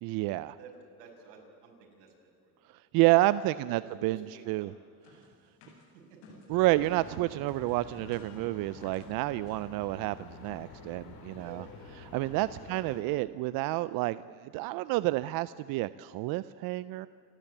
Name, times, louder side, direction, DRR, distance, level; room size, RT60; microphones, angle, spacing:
voice 1, 0.0-0.6 2.7-4.7 6.5-11.6 12.0-14.2 14.5-17.1, right 18 dB, 50° right, 16 dB, 0.5 m, -29 dB
voice 2, 0.6-2.5 3.6-4.7 5.9-6.2 11.3-11.6 12.5-12.7, right 5 dB, 70° right, 1 dB, 6.0 m, -52 dB
sound 1, 5.0-7.1 7.5-9.1 9.5-9.7 10.0-10.1 10.3-10.5, left 3 dB, 75° left, 7.0 m, -56 dB
sound 2, 6.5-13.0, left 4 dB, 50° left, 4.4 m, -49 dB
28.0 x 12.5 x 8.5 m, 2.5 s
supercardioid pair, 125°, 46 cm